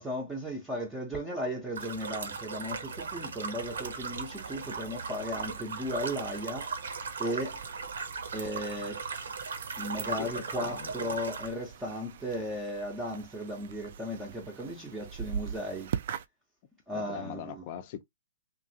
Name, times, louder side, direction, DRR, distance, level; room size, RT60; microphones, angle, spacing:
voice 1, 0.0-6.7 7.2-7.6 8.3-9.0 9.8-15.9 16.9-17.7, equal, 5° right, 0.6 m, -36 dB
sound 1, 1.7-11.5, right 4 dB, 85° right, 0.9 m, -38 dB
sound 2, 3.6-16.3, right 8 dB, 50° right, 0.3 m, -43 dB
voice 2, 10.2-11.2 16.9-18.0, left 10 dB, 35° left, 0.5 m, -41 dB
3.0 x 2.4 x 2.7 m
hypercardioid pair, 160°, 0 cm